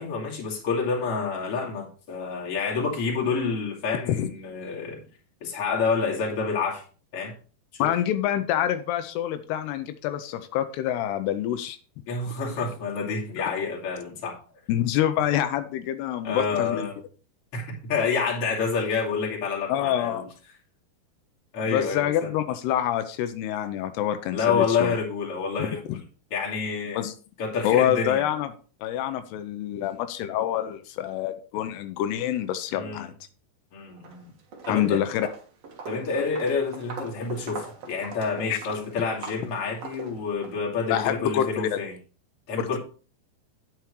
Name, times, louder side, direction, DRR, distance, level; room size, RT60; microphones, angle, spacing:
voice 1, 0.0-5.0 5.4-6.8 7.1-7.3 7.7-7.9 12.1-14.4 16.2-16.9 17.5-20.3 21.5-22.3 24.3-25.8 26.3-27.0 27.4-28.2 32.7-33.1 33.7-34.3 34.7-35.0 35.9-41.9 42.5-42.8, left 5 dB, 40° left, -2 dB, 2.9 m, -28 dB
voice 2, 7.8-11.8 14.7-16.9 19.7-20.3 21.7-24.9 26.9-27.1 27.6-28.5 28.8-33.1 34.7-35.3 38.5-38.6 40.9-41.8 42.6-42.8, left 11 dB, 90° left, 9 dB, 2.7 m, -26 dB
Walk footsteps, 33.9-34.2 34.5-40.6, right 4 dB, 55° right, 2.0 m, -41 dB
9.2 x 8.9 x 3.2 m, 0.38 s
omnidirectional pair, 4.7 m